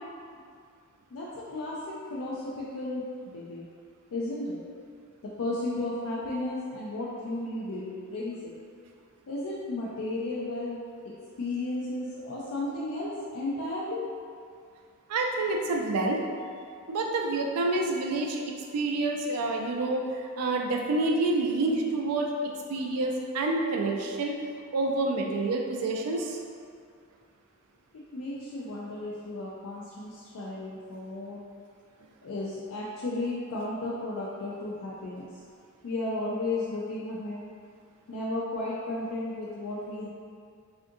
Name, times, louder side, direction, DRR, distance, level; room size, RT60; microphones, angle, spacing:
voice 1, 1.1-3.6 4.1-4.6 5.2-8.5 9.3-10.8 11.0-11.1 11.4-14.0 27.9-31.4 32.2-35.4 35.8-37.4 38.1-40.1, left 2 dB, 65° left, -6 dB, 0.4 m, -34 dB
voice 2, 15.1-16.2 16.9-18.4 18.7-22.3 22.7-24.3 24.7-26.4, right 2 dB, 85° right, 1 dB, 0.4 m, -28 dB
3.6 x 2.5 x 2.5 m, 2.2 s
head